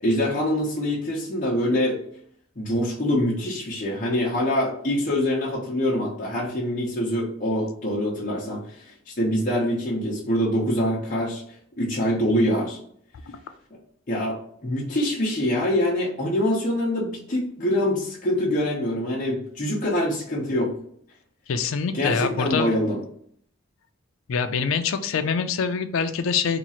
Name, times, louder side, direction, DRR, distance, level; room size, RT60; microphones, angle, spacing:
voice 1, 0.0-2.0 2.6-11.4 11.8-12.8 14.1-20.7 21.9-23.0, left 1 dB, 35° left, -5 dB, 0.7 m, -25 dB
voice 2, 21.5-22.7 24.3-26.6, left 6 dB, 70° left, 9 dB, 0.4 m, -25 dB
2.9 x 2.4 x 4.2 m, 0.62 s
head